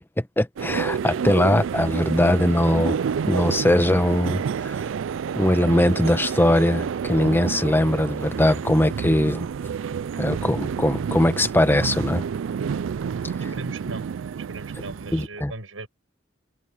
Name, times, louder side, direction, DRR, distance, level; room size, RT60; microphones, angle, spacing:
voice 1, 0.0-3.0 3.3-4.9 5.4-9.5 10.2-12.2 13.4-13.5 15.1-15.5, left 1 dB, 10° left, 1.0 m, -21 dB
sound 1, 0.6-15.3, right 7 dB, 70° right, 0.4 m, -29 dB
voice 2, 13.5-14.0 14.4-15.9, right 2 dB, 85° right, 7.4 m, -37 dB
head